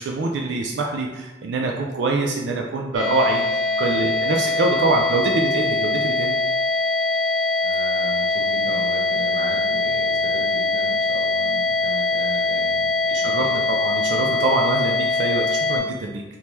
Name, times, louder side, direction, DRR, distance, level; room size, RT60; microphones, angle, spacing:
voice 1, 0.0-3.4 3.8-5.2 5.5-6.3 13.1-16.2, right 3 dB, 75° right, 1 dB, 0.4 m, -24 dB
sound 1, 2.9-15.8, left 3 dB, 55° right, 1.4 m, -22 dB
voice 2, 4.8-5.2 7.6-13.5, equal, 40° right, -2 dB, 0.8 m, -37 dB
3.5 x 2.8 x 3.0 m, 1.1 s
head